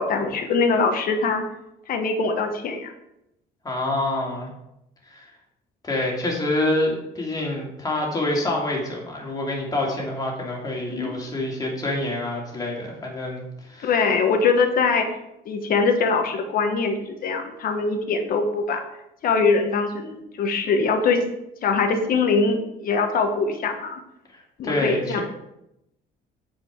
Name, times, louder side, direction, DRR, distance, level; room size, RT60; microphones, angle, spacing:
voice 1, 0.0-1.4 1.9-2.9 10.9-11.1 13.8-15.1 15.4-18.8 19.2-21.3 21.6-24.0 24.6-25.2, left 4 dB, 60° left, 5 dB, 1.4 m, -22 dB
voice 2, 3.6-4.5 5.0-5.3 5.8-13.9 24.3-25.2, left 2 dB, 20° left, -2 dB, 2.6 m, -27 dB
8.0 x 5.1 x 4.8 m, 0.84 s
cardioid pair, 110°, 17 cm